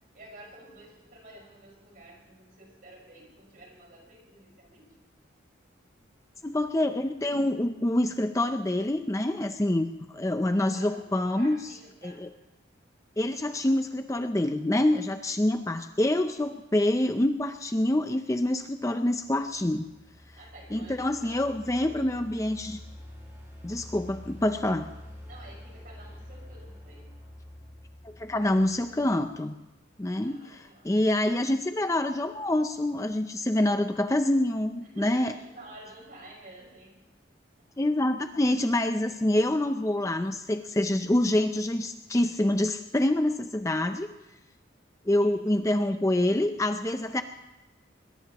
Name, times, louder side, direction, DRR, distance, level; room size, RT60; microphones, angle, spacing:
voice 1, 0.1-5.0 10.6-12.2 20.4-22.2 25.3-27.2 30.2-30.9 34.8-37.0 45.2-45.6, right 1 dB, 45° right, -1 dB, 5.4 m, -50 dB
voice 2, 6.4-11.6 12.0-12.3 13.2-19.9 20.7-22.8 23.6-24.9 28.0-29.5 30.0-35.3 37.8-44.1 45.1-47.2, left 1 dB, 15° left, 7 dB, 0.5 m, -26 dB
sound 1, 19.2-29.4, left 1 dB, 15° right, 6.2 m, -47 dB
21.5 x 21.0 x 3.0 m, 1.0 s
head